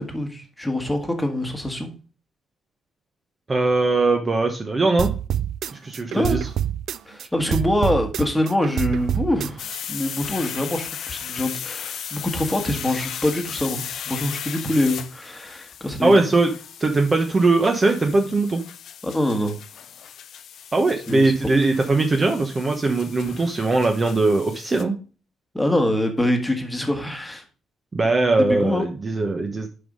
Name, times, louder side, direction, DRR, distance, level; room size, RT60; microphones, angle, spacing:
voice 1, 0.0-1.9 6.0-6.4 7.0-16.1 19.0-19.6 21.1-21.3 25.5-27.4 28.5-28.8, left 1 dB, 5° left, 4 dB, 1.5 m, -24 dB
voice 2, 3.5-5.1 5.7-6.4 16.0-16.5 16.8-18.6 20.7-24.9 27.9-29.7, right 3 dB, 25° right, 4 dB, 0.9 m, -20 dB
sound 1, 5.0-7.3 7.5-9.8, right 10 dB, 65° right, 0.4 m, -26 dB
sound 2, 9.6-24.8, left 9 dB, 60° left, 0.6 m, -36 dB
6.8 x 5.5 x 5.2 m, 0.35 s
cardioid pair, 130°, 0 cm